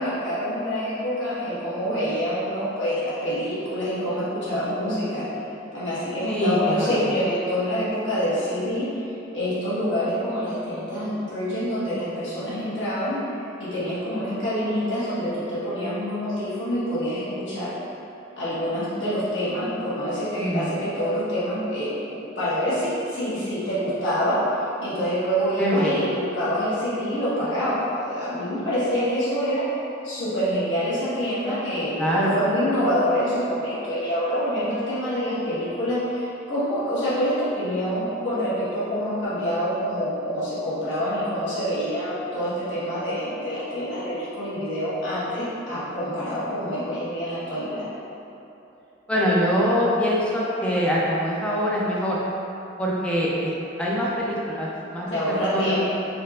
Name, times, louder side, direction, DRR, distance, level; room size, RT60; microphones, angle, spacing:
voice 1, 0.0-5.2 5.7-9.0 9.3-13.2 13.6-17.7 18.4-24.4 24.8-29.7 30.0-47.9 55.1-55.8, equal, 65° left, -11 dB, 1.4 m, -26 dB
voice 2, 6.3-7.1 20.4-20.7 25.6-26.0 32.0-32.4 49.1-52.2 52.8-53.5 53.8-55.8, equal, 5° left, -6 dB, 0.5 m, -24 dB
4.3 x 3.0 x 2.4 m, 2.9 s
head